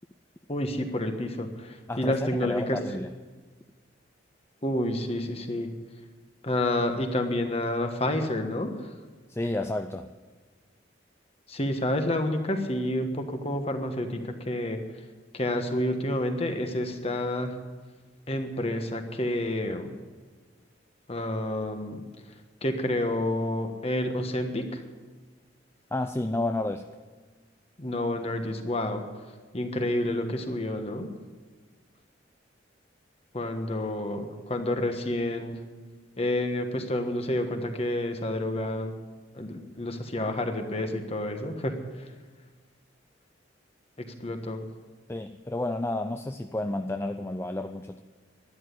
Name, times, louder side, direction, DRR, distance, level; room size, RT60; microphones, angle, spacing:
voice 1, 0.5-2.8 4.6-5.7 6.4-9.0 11.5-15.0 15.3-17.6 18.3-20.0 21.1-24.8 27.8-29.0 29.5-31.1 33.3-35.6 36.2-39.0 39.3-42.1 44.0-44.7, left 1 dB, 35° left, 6 dB, 1.4 m, -29 dB
voice 2, 1.9-3.1 9.3-10.1 25.9-26.8 45.1-48.0, left 2 dB, 15° left, 7 dB, 0.4 m, -31 dB
12.0 x 10.5 x 9.6 m, 1.4 s
head